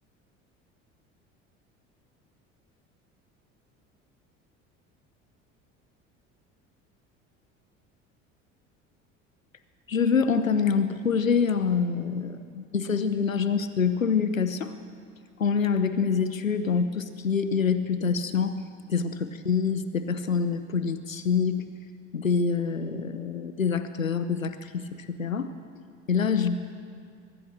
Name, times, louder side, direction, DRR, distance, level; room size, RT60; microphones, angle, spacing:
voice 1, 9.9-14.7 15.4-18.6 18.9-21.7 22.1-25.5 26.1-26.6, left 6 dB, 85° left, 11 dB, 1.0 m, -26 dB
24.0 x 20.5 x 6.5 m, 2.2 s
figure-of-eight pair, 60°, 39 cm